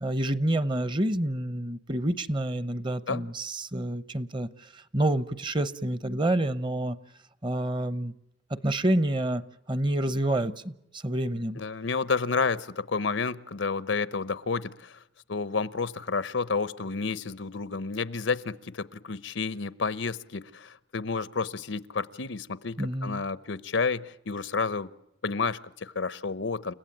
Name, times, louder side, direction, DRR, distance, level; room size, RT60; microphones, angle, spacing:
voice 1, 0.0-7.0 7.4-8.1 8.5-9.4 9.7-11.6 22.8-23.2, right 1 dB, 25° right, 15 dB, 0.8 m, -28 dB
voice 2, 11.6-15.0 15.3-24.9 25.2-26.7, left 4 dB, 90° left, 16 dB, 0.9 m, -30 dB
30.0 x 16.0 x 9.0 m, 0.86 s
head